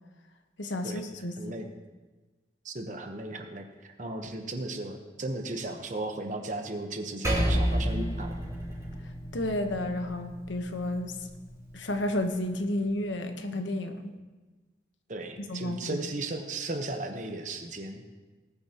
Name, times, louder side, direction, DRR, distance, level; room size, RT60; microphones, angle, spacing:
voice 1, 0.6-1.5 9.3-11.1 11.7-14.1 15.5-16.0, left 1 dB, 85° left, 6 dB, 1.1 m, -31 dB
voice 2, 1.4-1.7 2.6-8.4 15.1-18.0, right 2 dB, 40° right, 5 dB, 1.0 m, -36 dB
Percussion, 7.2-12.0, equal, 15° right, 2.5 m, -31 dB
18.5 x 9.6 x 3.0 m, 1.3 s
head